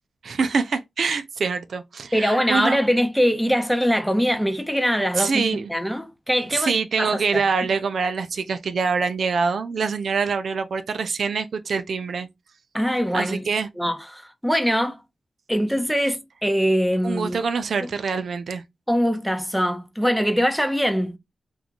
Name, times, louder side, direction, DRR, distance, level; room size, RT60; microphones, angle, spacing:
voice 1, 0.2-2.8 5.1-5.7 6.5-12.3 13.1-13.7 17.0-18.6, right 5 dB, 75° right, 0.4 m, -25 dB
voice 2, 2.1-7.4 12.7-13.5 13.8-15.0 15.5-17.4 18.9-21.2, equal, ahead, 0.7 m, -23 dB
3.7 x 2.4 x 2.9 m
cardioid pair, 70°, 0 cm